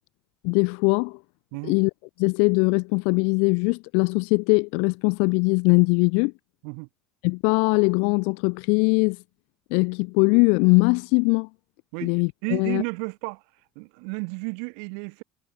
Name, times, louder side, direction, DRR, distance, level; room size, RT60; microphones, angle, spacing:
voice 1, 0.4-1.2 1.6-1.9 2.2-6.3 7.2-9.2 9.7-11.5 12.0-12.8, left 37 dB, 80° left, 0.4 m, -21 dB
voice 2, 12.4-13.4 13.8-15.2, right 40 dB or more, 90° right, 2.0 m, -32 dB
cardioid pair, 170°, 3 cm